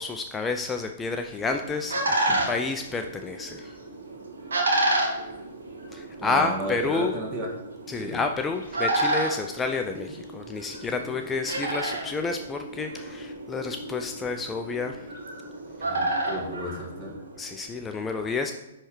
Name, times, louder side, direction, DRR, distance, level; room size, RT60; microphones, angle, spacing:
voice 1, 0.0-3.7 5.9-7.1 7.9-15.1 17.4-18.5, left 4 dB, 15° left, 5 dB, 0.3 m, -30 dB
sound 1, 1.2-17.5, right 1 dB, 70° right, 1.3 m, -31 dB
voice 2, 6.2-7.5 7.9-8.2 10.9-11.1 15.8-17.2, right 1 dB, 35° right, -2 dB, 1.7 m, -34 dB
9.7 x 3.3 x 3.1 m, 1.0 s
figure-of-eight pair, 115°, 0 cm